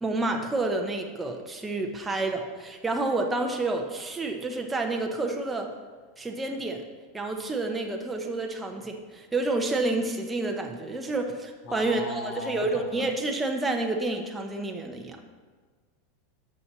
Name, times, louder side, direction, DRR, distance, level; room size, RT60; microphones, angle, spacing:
voice 1, 0.0-5.7 6.2-6.8 7.1-15.2, right 2 dB, 10° right, 2 dB, 0.8 m, -29 dB
voice 2, 11.7-13.1, left 4 dB, 50° left, 4 dB, 1.2 m, -37 dB
6.1 x 5.4 x 6.7 m, 1.4 s
supercardioid pair, 120°, 0 cm